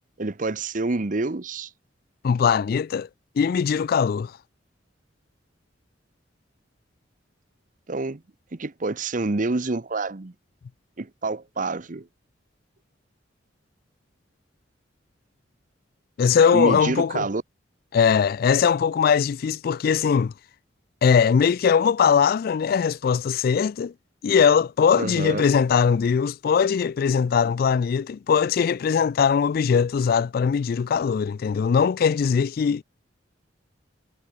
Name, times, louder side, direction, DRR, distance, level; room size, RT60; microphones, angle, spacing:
voice 1, 0.2-1.7 7.9-8.2 8.5-10.3 11.0-12.1 16.5-17.4 25.0-25.4, right 3 dB, 45° right, 0.9 m, -27 dB
voice 2, 2.2-3.1 3.4-4.3 16.2-17.2 17.9-20.3 21.0-23.9 24.2-32.8, left 6 dB, 50° left, 0.3 m, -20 dB
head